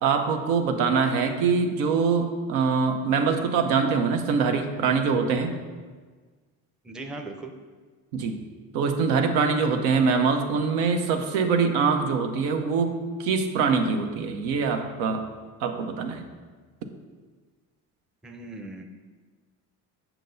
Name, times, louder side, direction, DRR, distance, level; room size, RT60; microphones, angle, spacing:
voice 1, 0.0-5.6 8.1-8.4 8.7-15.2 15.6-16.3, right 5 dB, 85° right, 5 dB, 0.8 m, -24 dB
voice 2, 6.8-7.5 18.2-18.8, right 2 dB, ahead, 3 dB, 0.5 m, -38 dB
7.4 x 5.6 x 2.6 m, 1.4 s
supercardioid pair, 85°, 42 cm